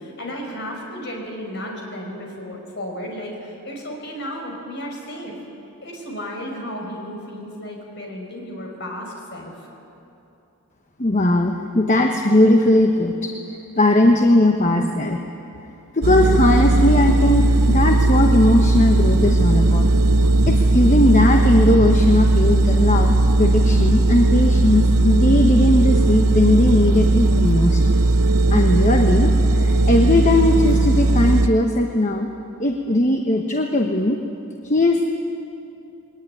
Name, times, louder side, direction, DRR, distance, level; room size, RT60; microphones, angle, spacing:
voice 1, 0.0-5.3 5.8-9.7, equal, 50° left, 0 dB, 5.1 m, -33 dB
voice 2, 11.0-13.4 13.8-15.2 15.9-27.8 28.5-32.3 32.6-34.2 34.6-35.1, left 1 dB, 35° left, 3 dB, 1.1 m, -18 dB
sound 1, 16.0-31.5, right 2 dB, 90° right, 0.8 m, -17 dB
21.5 x 18.5 x 10.0 m, 2.8 s
head